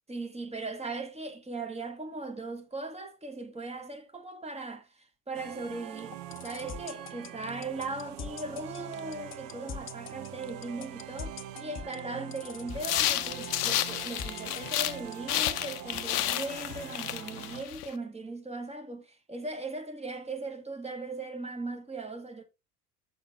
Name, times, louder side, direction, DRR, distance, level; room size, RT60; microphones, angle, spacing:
voice 1, 0.1-22.4, right 3 dB, 15° right, 1.5 m, -39 dB
sound 1, 5.3-17.6, right 11 dB, 65° right, 0.9 m, -44 dB
sound 2, 6.0-15.1, left 7 dB, 25° left, 0.7 m, -41 dB
sound 3, 12.8-15.0 15.3-17.9, left 13 dB, 70° left, 0.7 m, -31 dB
6.6 x 4.2 x 4.9 m
figure-of-eight pair, 70°, 47 cm